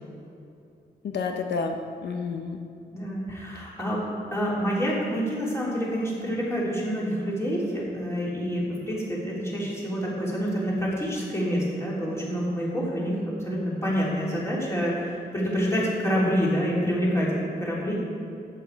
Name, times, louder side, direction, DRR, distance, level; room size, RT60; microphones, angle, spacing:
voice 1, 1.0-2.6, left 4 dB, 90° left, 4 dB, 0.8 m, -30 dB
voice 2, 2.9-4.0 4.3-13.1 13.4-17.9, equal, 15° left, -6 dB, 3.3 m, -27 dB
14.0 x 8.5 x 4.6 m, 2.6 s
wide cardioid pair, 130°, 17 cm